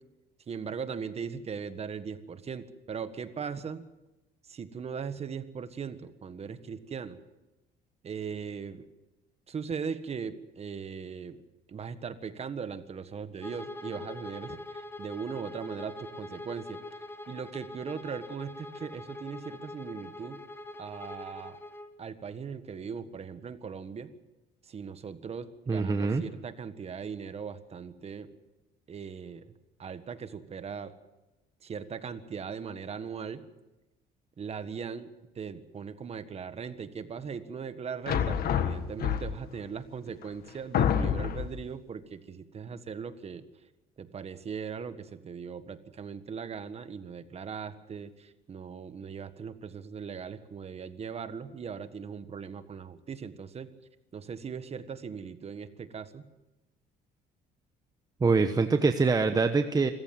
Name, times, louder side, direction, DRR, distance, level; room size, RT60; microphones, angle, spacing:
voice 1, 0.5-3.8 4.4-7.2 8.0-8.9 9.5-11.4 11.7-16.8 17.3-20.4 20.8-21.6 22.0-24.1 24.6-28.3 28.9-29.5 29.8-30.9 31.6-33.4 34.4-35.1 35.3-43.4 44.0-53.7 54.1-56.2, right 6 dB, 40° right, 11 dB, 1.5 m, -39 dB
Bowed string instrument, 13.4-21.9, left 2 dB, 15° left, 2.5 m, -43 dB
voice 2, 25.7-26.2 58.2-59.9, right 4 dB, 20° right, 7 dB, 1.1 m, -24 dB
sound 1, 38.1-39.6 40.2-40.3 40.7-41.6, left 8 dB, 65° left, 1.6 m, -27 dB
25.5 x 14.5 x 7.8 m, 1.0 s
cardioid pair, 110°, 17 cm